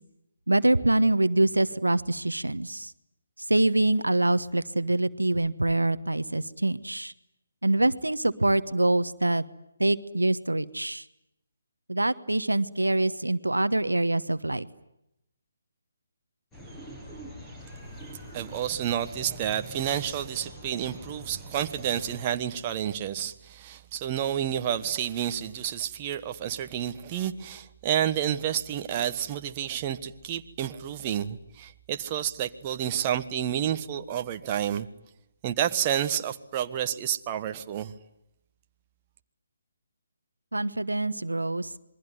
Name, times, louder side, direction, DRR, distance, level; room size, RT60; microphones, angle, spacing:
voice 1, 0.5-2.9 3.5-7.1 7.6-9.4 9.8-11.0 11.9-14.7 40.5-41.7, right 2 dB, 85° right, 1.2 m, -25 dB
sound 1, 16.5-22.3, equal, 10° left, 7.0 m, -44 dB
voice 2, 18.3-34.9 35.4-37.9, right 10 dB, 25° right, 1.3 m, -30 dB
27.5 x 22.0 x 9.5 m
figure-of-eight pair, 145°, 0 cm